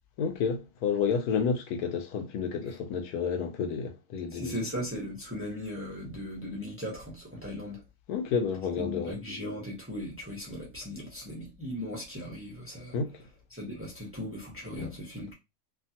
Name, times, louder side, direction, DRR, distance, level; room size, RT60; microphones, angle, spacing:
voice 1, 0.2-4.5 8.1-9.2 12.9-13.1 14.8-14.9, left 6 dB, 85° left, 1.2 m, -30 dB
voice 2, 4.3-7.8 8.8-13.0 13.5-15.3, left 1 dB, 10° right, 0.8 m, -38 dB
2.8 x 2.3 x 2.7 m
omnidirectional pair, 1.6 m